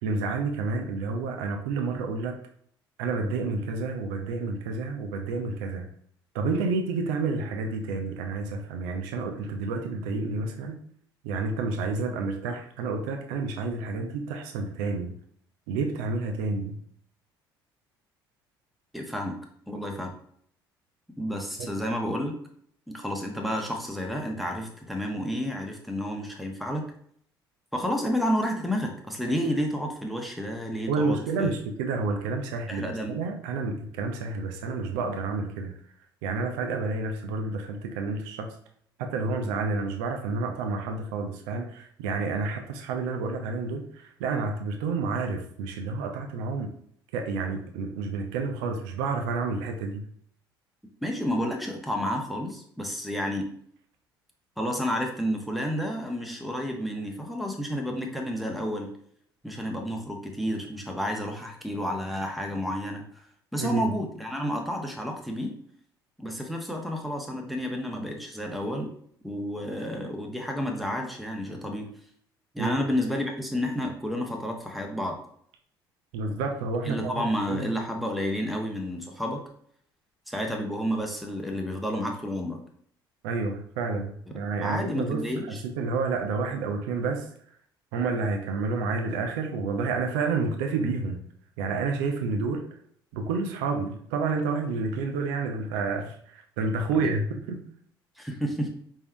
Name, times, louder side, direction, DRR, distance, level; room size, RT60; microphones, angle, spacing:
voice 1, 0.0-2.4 3.0-5.9 6.3-10.8 11.2-15.1 15.7-16.8 21.6-21.7 30.9-35.7 36.2-38.5 39.0-46.7 47.1-50.0 63.6-63.8 72.6-72.8 76.1-77.7 83.2-87.3 87.9-91.2 91.6-92.7 93.1-97.6, right 4 dB, 65° right, 4 dB, 0.6 m, -29 dB
voice 2, 18.9-19.4 19.7-20.1 21.2-22.3 22.9-26.8 27.7-31.5 32.7-33.2 51.0-53.5 54.6-58.9 59.4-63.2 63.5-65.5 66.2-68.9 69.2-71.9 72.5-75.2 76.8-79.4 80.3-82.6 84.6-85.6 96.9-97.1 98.2-98.7, equal, ahead, 2 dB, 1.0 m, -30 dB
5.4 x 3.4 x 2.2 m, 0.63 s
figure-of-eight pair, 55°, 12 cm